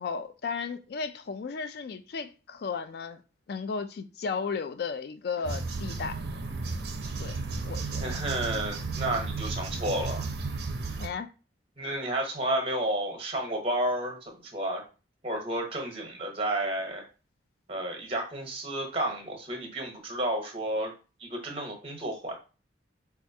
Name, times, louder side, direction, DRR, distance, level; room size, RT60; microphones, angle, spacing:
voice 1, 0.0-3.2 3.5-6.2 7.2-7.4 7.6-8.2 11.0-11.3, left 5 dB, 55° left, 0.3 m, -34 dB
sound 1, 5.4-11.1, right 3 dB, 55° right, 0.5 m, -33 dB
voice 2, 8.0-10.2 11.8-14.8 15.2-17.0 17.7-20.9 21.2-22.4, right 1 dB, 30° right, 0.8 m, -31 dB
4.4 x 2.4 x 2.7 m
head